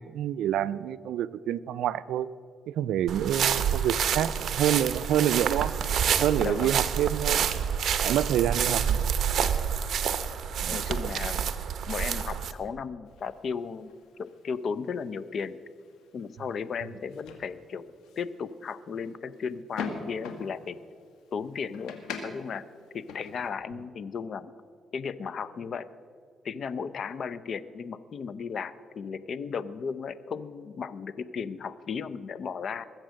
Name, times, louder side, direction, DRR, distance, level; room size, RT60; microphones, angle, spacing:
voice 1, 0.0-2.3 2.7-5.7 6.2-7.5 8.0-9.1 10.6-10.8, right 11 dB, 80° right, 16 dB, 0.4 m, -27 dB
sound 1, 3.1-12.5, right 8 dB, 60° right, 0.8 m, -28 dB
voice 2, 6.4-6.7 10.7-11.5 11.9-13.9 14.2-15.6 16.1-20.8 21.3-22.6 22.9-24.5 24.9-25.9 26.4-32.8, left 6 dB, 55° left, 16 dB, 0.6 m, -35 dB
sound 2, 13.1-23.5, left 5 dB, 85° left, 1.7 m, -44 dB
21.0 x 7.5 x 6.4 m, 2.2 s
cardioid pair, 90°, 0 cm